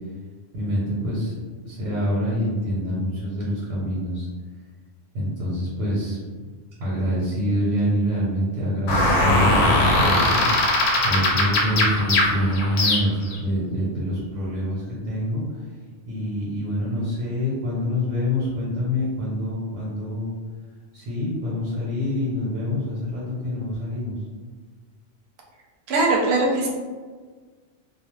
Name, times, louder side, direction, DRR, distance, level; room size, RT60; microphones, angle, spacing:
voice 1, 0.5-1.3 1.6-4.3 5.1-6.2 6.8-15.4 16.0-20.3 20.9-24.2, equal, 90° right, -6 dB, 1.1 m, -26 dB
sound 1, 8.9-13.4, left 2 dB, 85° left, 0.9 m, -20 dB
voice 2, 25.9-26.7, right 2 dB, 65° right, -1 dB, 0.8 m, -20 dB
2.4 x 2.1 x 3.0 m, 1.5 s
omnidirectional pair, 1.3 m